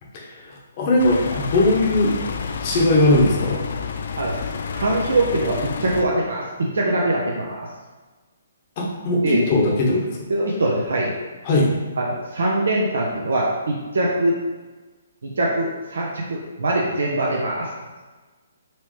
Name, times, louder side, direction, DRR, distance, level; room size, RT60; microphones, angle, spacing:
voice 1, 0.1-2.2 2.6-3.6 8.8-10.1 11.4-11.7, left 1 dB, 40° left, -2 dB, 1.0 m, -19 dB
sound 1, 1.0-6.0, left 6 dB, 55° left, 0.3 m, -29 dB
voice 2, 4.8-7.7 9.2-9.4 10.3-11.1 12.0-14.4 15.2-17.7, right 1 dB, 65° right, -3 dB, 0.7 m, -22 dB
4.3 x 3.0 x 3.2 m, 1.3 s
figure-of-eight pair, 135°, 0 cm